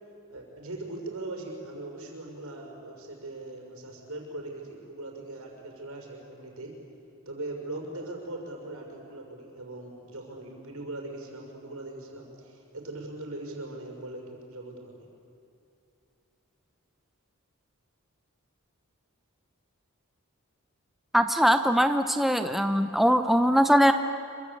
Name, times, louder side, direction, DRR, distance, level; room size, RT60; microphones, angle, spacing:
voice 1, 0.3-6.7 7.3-14.9, right 2 dB, 75° right, 1 dB, 6.1 m, -40 dB
voice 2, 21.1-23.9, equal, ahead, 7 dB, 0.7 m, -21 dB
27.0 x 24.5 x 8.5 m, 2.7 s
head